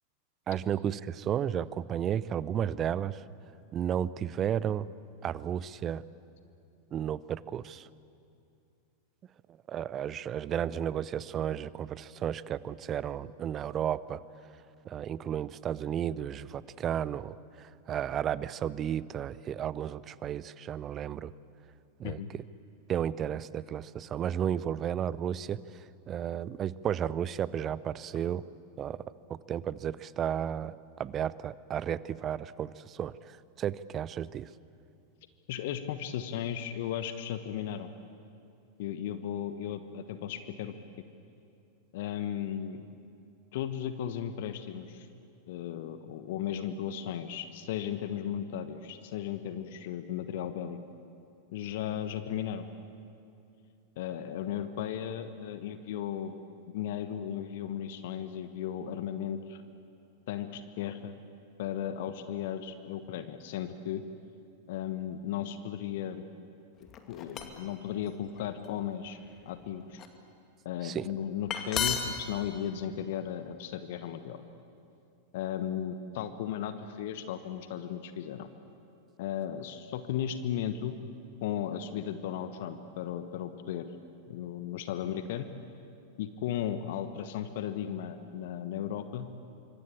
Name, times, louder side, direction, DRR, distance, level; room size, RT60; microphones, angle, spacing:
voice 1, 0.5-3.2 3.7-4.9 5.2-6.0 6.9-7.9 9.7-14.2 14.8-21.3 22.0-22.4 22.9-28.4 28.8-29.0 29.3-34.5 70.8-71.1, right 9 dB, 30° right, 19 dB, 0.7 m, -33 dB
voice 2, 35.5-37.9 38.8-40.7 41.9-42.8 43.5-45.1 45.5-50.8 51.5-52.7 54.0-56.3 56.7-59.6 60.3-61.1 61.6-64.0 64.7-66.2 67.1-69.2 69.4-70.0 70.6-74.4 75.3-78.5 79.2-81.0 81.4-83.9 84.3-85.5 86.2-89.3, left 10 dB, 55° left, 10 dB, 1.2 m, -35 dB
sound 1, 66.9-67.7 68.4-68.7 69.2-70.1 71.2-71.3 71.5-72.2, left 7 dB, 30° left, 2.3 m, -33 dB
26.5 x 25.0 x 8.7 m, 2.6 s
figure-of-eight pair, 90°, 0 cm